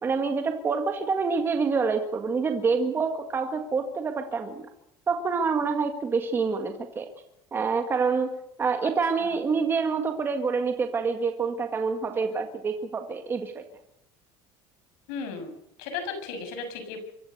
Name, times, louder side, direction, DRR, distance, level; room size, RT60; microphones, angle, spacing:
voice 1, 0.0-4.7 5.1-7.1 7.5-8.3 8.6-13.6, right 5 dB, 20° right, 5 dB, 1.8 m, -27 dB
voice 2, 15.1-15.5 15.8-17.0, left 5 dB, 80° left, 7 dB, 6.5 m, -35 dB
24.5 x 13.5 x 8.0 m, 0.80 s
cardioid pair, 155°, 10 cm